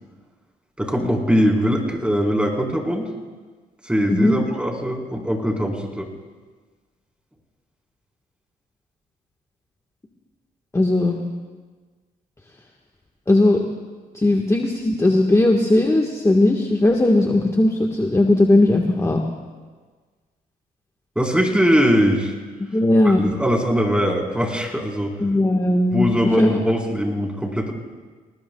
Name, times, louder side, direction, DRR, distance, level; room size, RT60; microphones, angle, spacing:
voice 1, 0.8-3.1 3.8-6.1 21.2-22.3 23.0-25.2 25.9-27.7, equal, 5° right, -1 dB, 4.3 m, -21 dB
voice 2, 10.7-11.2 13.3-13.6 14.1-19.2 22.7-23.2 25.2-26.1 26.4-26.6, left 2 dB, 20° left, 1 dB, 1.5 m, -18 dB
25.5 x 19.0 x 2.4 m, 1.4 s
cardioid pair, 65°, 17 cm